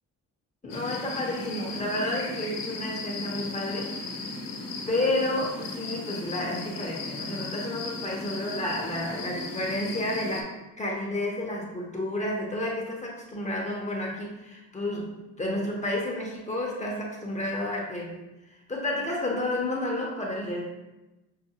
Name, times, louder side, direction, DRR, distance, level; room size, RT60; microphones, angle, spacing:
voice 1, 0.6-4.0 4.9-18.2 18.7-20.6, left 1 dB, 20° left, -2 dB, 0.6 m, -31 dB
sound 1, 0.7-10.4, left 3 dB, 75° left, 0.7 m, -36 dB
5.5 x 2.1 x 2.8 m, 1.0 s
cardioid pair, 105°, 34 cm